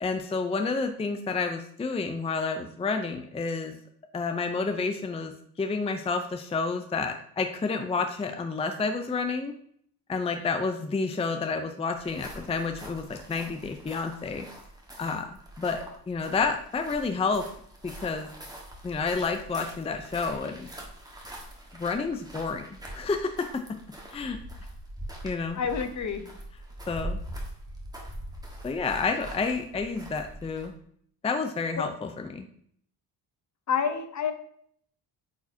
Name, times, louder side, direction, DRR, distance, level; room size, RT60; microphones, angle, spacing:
voice 1, 0.0-3.8 4.1-9.5 10.1-14.5 15.0-17.5 17.8-18.3 18.8-20.7 21.7-23.6 24.1-24.4 25.2-25.6 26.9-27.2 28.6-30.7 31.2-32.4, left 4 dB, 15° left, 6 dB, 0.5 m, -30 dB
sound 1, 11.9-30.8, right 1 dB, 10° right, 1.4 m, -43 dB
voice 2, 25.5-26.3 31.8-31.9 33.7-34.3, left 6 dB, 45° left, 9 dB, 0.8 m, -28 dB
8.6 x 4.8 x 2.7 m, 0.64 s
cardioid pair, 115°, 40 cm